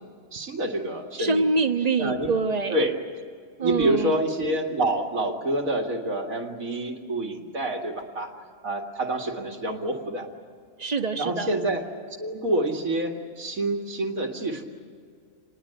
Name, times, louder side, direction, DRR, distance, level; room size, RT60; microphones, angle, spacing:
voice 1, 0.3-1.5 2.0-2.3 2.7-3.0 3.6-8.4 8.6-10.3 11.2-11.8 12.2-14.6, right 1 dB, 75° right, 2 dB, 2.6 m, -27 dB
voice 2, 1.2-2.8 3.6-4.1 10.8-11.5, right 4 dB, 30° right, 7 dB, 1.2 m, -25 dB
27.5 x 21.0 x 7.9 m, 2.2 s
omnidirectional pair, 1.5 m